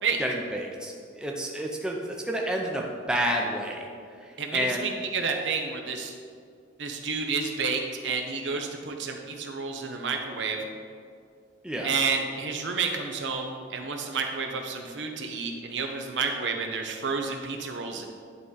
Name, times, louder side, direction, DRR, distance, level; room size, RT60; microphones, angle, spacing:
voice 1, 0.2-3.9 4.5-4.8 11.6-11.9, equal, 5° right, -1 dB, 0.5 m, -29 dB
voice 2, 4.4-6.1 6.8-10.7 11.8-18.1, right 5 dB, 70° right, 3 dB, 0.7 m, -30 dB
10.5 x 3.7 x 4.0 m, 2.2 s
head